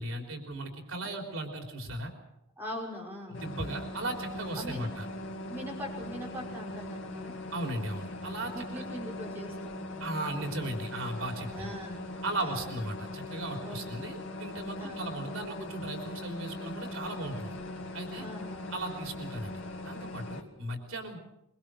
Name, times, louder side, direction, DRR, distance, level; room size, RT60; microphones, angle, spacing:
voice 1, 0.0-2.1 3.4-5.1 7.5-8.5 10.0-11.7 12.2-17.5 17.9-18.3 18.7-21.2, right 1 dB, 80° right, 3 dB, 3.6 m, -36 dB
voice 2, 2.6-3.4 4.6-4.9 5.5-7.4 8.5-10.0 11.5-12.0 12.4-12.7 13.6-13.8 14.8-15.2 18.2-18.7, left 1 dB, 10° right, -4 dB, 5.6 m, -42 dB
sound 1, 3.3-20.4, left 1 dB, 65° left, 2.2 m, -40 dB
23.5 x 22.5 x 6.4 m, 0.86 s
head